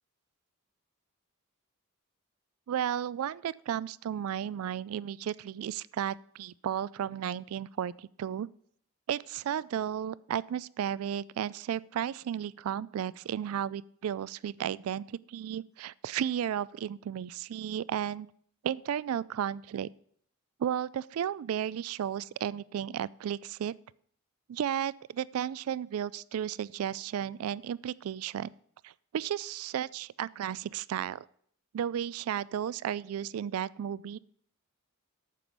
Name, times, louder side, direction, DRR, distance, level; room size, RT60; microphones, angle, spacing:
voice 1, 2.7-8.5 9.1-18.3 18.6-19.9 20.6-23.7 24.5-28.5 28.8-31.3 31.7-34.2, right 9 dB, 75° right, 21 dB, 0.3 m, -34 dB
9.0 x 7.0 x 6.0 m, 0.63 s
head